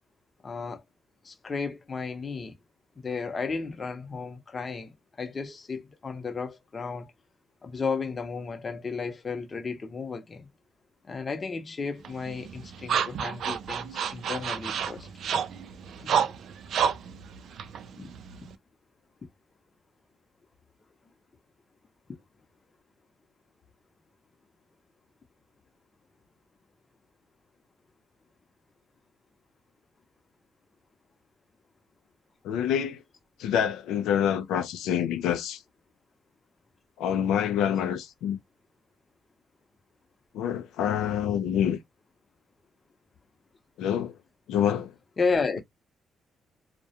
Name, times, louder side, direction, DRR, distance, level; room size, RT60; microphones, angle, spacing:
voice 1, 0.4-0.8 1.2-2.5 3.0-7.1 7.6-10.5 11.1-15.1 16.0-16.3 18.0-18.1 22.1-22.2 45.2-45.6, left 4 dB, 35° left, 0.7 m, -33 dB
sound 1, 12.0-18.5, right 7 dB, 70° right, 0.3 m, -30 dB
voice 2, 32.4-33.0 33.4-35.6 37.0-38.4 40.3-41.8 43.8-44.1 44.5-44.9, left 9 dB, 90° left, 0.3 m, -26 dB
2.3 x 2.1 x 2.8 m
cardioid pair, 90°, 0 cm